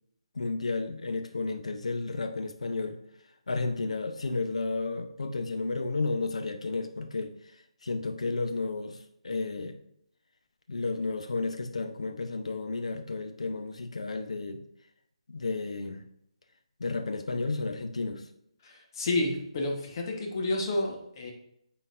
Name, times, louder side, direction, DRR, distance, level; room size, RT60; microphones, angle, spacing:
voice 1, 0.3-3.0 3.5-7.3 7.8-9.8 10.7-14.6 15.3-16.0 16.8-18.3, left 3 dB, 70° left, 6 dB, 0.8 m, -32 dB
voice 2, 18.6-21.3, left 2 dB, 40° left, 1 dB, 1.3 m, -30 dB
9.1 x 4.0 x 2.6 m, 0.75 s
figure-of-eight pair, 150°, 3 cm